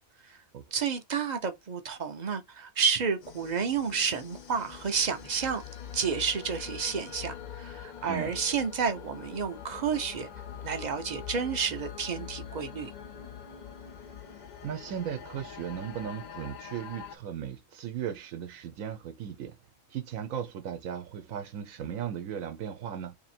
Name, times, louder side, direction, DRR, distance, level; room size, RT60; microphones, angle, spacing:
voice 1, 0.7-5.6 5.9-10.3 10.6-12.9, right 6 dB, 50° right, 0.5 m, -30 dB
sound 1, 3.2-17.2, left 8 dB, 60° left, 0.5 m, -44 dB
voice 2, 14.6-19.5 19.9-23.2, right 9 dB, 85° right, 1.1 m, -36 dB
2.9 x 2.8 x 4.2 m
omnidirectional pair, 1.4 m